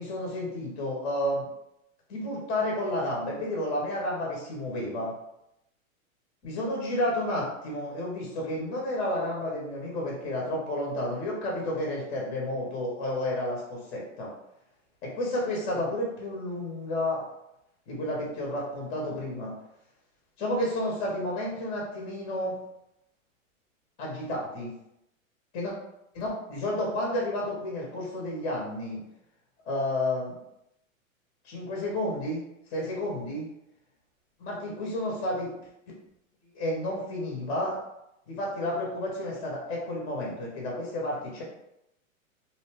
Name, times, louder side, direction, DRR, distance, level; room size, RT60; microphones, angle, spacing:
voice 1, 0.0-1.5 2.1-5.1 6.4-14.3 15.0-17.2 17.9-19.5 20.4-22.6 24.0-24.7 25.5-25.7 26.1-29.0 29.7-30.3 31.4-32.4 32.7-33.5 34.4-35.5 36.5-37.8 38.3-41.4, left 1 dB, 20° left, -3 dB, 0.6 m, -31 dB
2.6 x 2.1 x 3.2 m, 0.83 s
hypercardioid pair, 145°, 42 cm